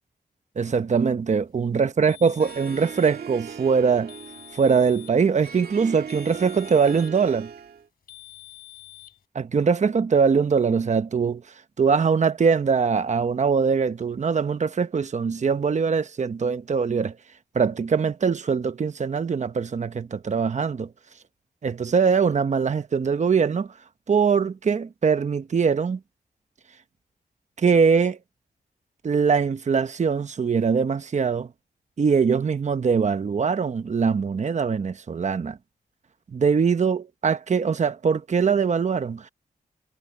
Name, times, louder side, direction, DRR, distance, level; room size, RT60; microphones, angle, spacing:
voice 1, 0.6-4.1 4.5-7.5 9.3-11.4 11.8-17.1 17.5-20.9 21.6-23.7 24.1-26.0 27.6-28.2 29.0-31.5 32.0-35.6 36.3-39.3, right 5 dB, 50° right, 1.0 m, -22 dB
sound 1, 2.1-3.2 4.1-5.2 6.1-7.2 8.1-9.2, left 18 dB, 75° left, 3.4 m, -47 dB
Harp, 2.4-7.9, right 6 dB, 75° right, 2.2 m, -39 dB
cardioid pair, 85°, 16 cm